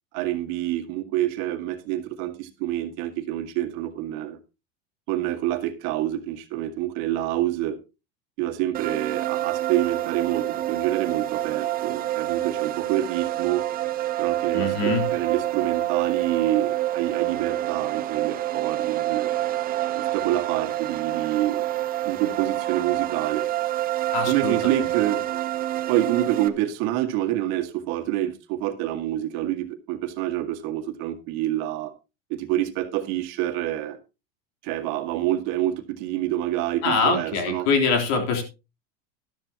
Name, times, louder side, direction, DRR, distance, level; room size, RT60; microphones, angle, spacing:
voice 1, 0.1-4.4 5.1-7.8 8.4-13.6 14.2-19.3 20.0-21.6 22.1-23.4 24.2-25.3 25.9-31.9 32.3-34.0 34.6-37.7, right 13 dB, 60° right, 2.0 m, -27 dB
sound 1, 8.7-26.5, right 14 dB, 30° right, 0.9 m, -27 dB
voice 2, 14.5-15.1 24.1-24.6 36.8-38.4, left 4 dB, 60° left, 3.7 m, -23 dB
13.0 x 12.5 x 2.9 m
supercardioid pair, 145°, 30 cm